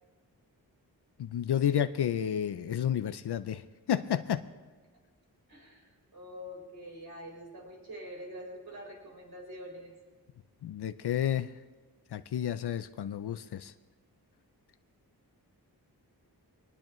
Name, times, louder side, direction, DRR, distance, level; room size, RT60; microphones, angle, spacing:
voice 1, 1.2-3.6 3.9-4.4 10.6-11.5 12.1-13.7, left 9 dB, 80° left, 12 dB, 0.5 m, -31 dB
voice 2, 5.5-9.9, equal, 65° right, -1 dB, 4.3 m, -45 dB
22.5 x 19.5 x 3.1 m, 1.3 s
wide cardioid pair, 100°, 39 cm